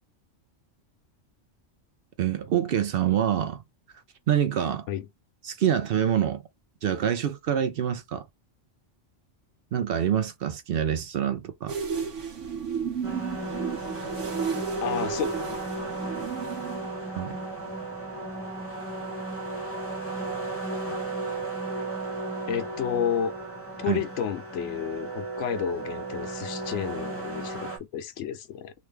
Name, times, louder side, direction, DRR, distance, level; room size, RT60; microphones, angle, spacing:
voice 1, 2.2-3.6 4.3-4.9 5.4-6.4 6.8-8.2 9.7-11.8 17.2-17.4 23.9-24.0, right 9 dB, 60° right, 0.6 m, -26 dB
sound 1, 11.7-16.9, right 6 dB, 80° right, 1.2 m, -33 dB
sound 2, 13.0-27.8, right 2 dB, 15° left, 0.5 m, -34 dB
voice 2, 14.8-15.3 22.5-23.3 23.8-28.7, left 8 dB, 80° left, 0.9 m, -31 dB
3.0 x 2.3 x 3.2 m
omnidirectional pair, 1.2 m